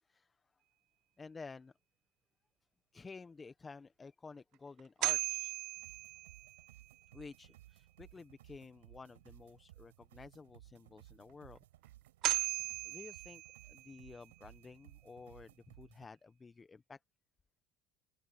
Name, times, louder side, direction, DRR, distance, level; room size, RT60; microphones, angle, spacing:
voice 1, 1.2-1.7 2.9-5.6 7.1-11.6 12.3-12.5 12.8-17.0, left 4 dB, 25° left, 1.2 m, -52 dB
sound 1, 4.8-6.9 11.8-11.9 12.2-14.1, right 16 dB, 60° right, 0.5 m, -37 dB
sound 2, 5.8-16.1, right 15 dB, 85° right, 5.0 m, -60 dB
hypercardioid pair, 75°, 0 cm